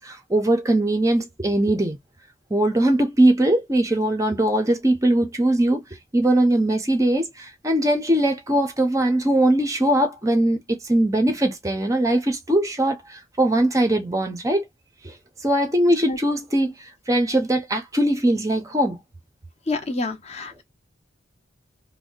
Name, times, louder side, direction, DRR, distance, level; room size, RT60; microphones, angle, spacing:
voice 1, 0.0-2.0 2.5-5.8 6.1-14.6 15.0-15.1 15.4-19.0, right 1 dB, 15° right, 0.5 m, -21 dB
voice 2, 19.7-20.6, left 2 dB, 30° left, 0.6 m, -28 dB
2.6 x 2.0 x 3.7 m
head